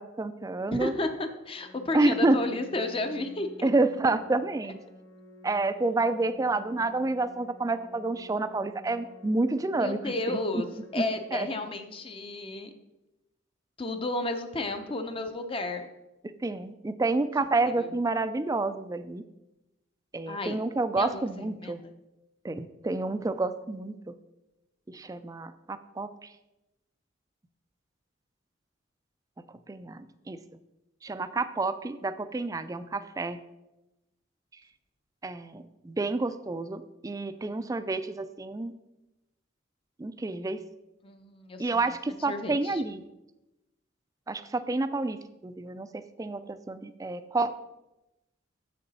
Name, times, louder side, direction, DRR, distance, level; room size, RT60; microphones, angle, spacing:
voice 1, 0.0-0.9 1.9-2.4 3.6-4.8 5.4-10.6 10.9-11.0 11.3-11.5 16.4-19.2 20.1-21.8 22.4-24.1 24.9-26.3 29.7-30.4 31.0-33.4 35.2-38.7 40.0-40.6 41.6-43.0 44.3-45.2 45.4-47.5, right 2 dB, 15° right, 12 dB, 0.3 m, -29 dB
voice 2, 0.7-3.7 9.8-10.7 10.9-12.7 13.8-15.9 17.8-17.9 20.3-20.6 21.0-21.9 41.0-41.7 42.3-42.8, left 2 dB, 25° left, 7 dB, 0.6 m, -32 dB
Organ, 1.3-12.3, left 2 dB, 65° left, 0.9 m, -51 dB
7.5 x 6.7 x 4.1 m, 0.97 s
head